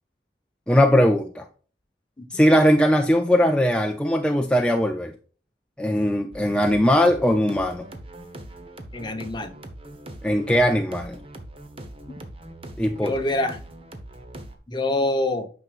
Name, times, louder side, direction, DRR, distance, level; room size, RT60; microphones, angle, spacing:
voice 1, 0.7-1.5 2.3-5.1 5.8-7.9 10.2-11.2 12.8-13.1, equal, 5° left, 0.5 m, -20 dB
sound 1, 6.3-14.6, right 1 dB, 30° right, 1.0 m, -41 dB
voice 2, 8.9-9.5 12.1-12.2 13.0-13.6 14.7-15.5, left 2 dB, 25° left, 0.9 m, -25 dB
9.4 x 6.1 x 2.5 m
head